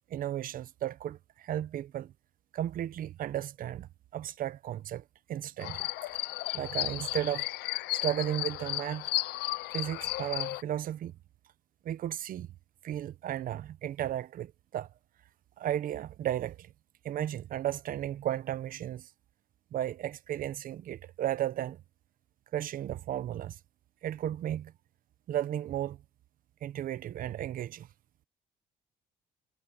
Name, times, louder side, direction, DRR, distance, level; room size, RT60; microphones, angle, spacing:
voice 1, 0.1-2.1 2.5-3.9 4.1-5.0 5.3-5.9 6.5-7.5 7.9-9.1 9.7-11.1 11.8-12.5 12.8-14.9 15.6-16.7 17.0-19.1 19.7-21.8 22.5-23.6 24.0-24.7 25.3-26.0 26.6-27.9, right 11 dB, 55° right, 0.8 m, -34 dB
sound 1, 5.6-10.6, left 18 dB, 80° left, 0.6 m, -34 dB
cardioid pair, 110°, 17 cm